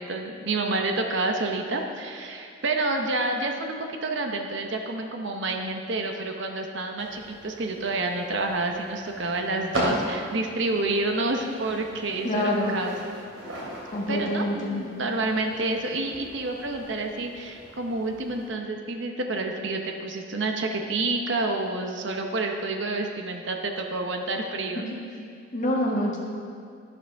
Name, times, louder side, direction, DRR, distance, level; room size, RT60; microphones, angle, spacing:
voice 1, 0.0-13.0 14.1-24.9, right 2 dB, 65° right, 3 dB, 0.8 m, -29 dB
sound 1, 7.0-18.5, right 1 dB, 80° right, 2.9 m, -37 dB
voice 2, 12.2-12.7 13.9-14.8 25.5-26.2, left 1 dB, 40° left, -4 dB, 1.6 m, -26 dB
11.5 x 11.5 x 3.5 m, 2.3 s
head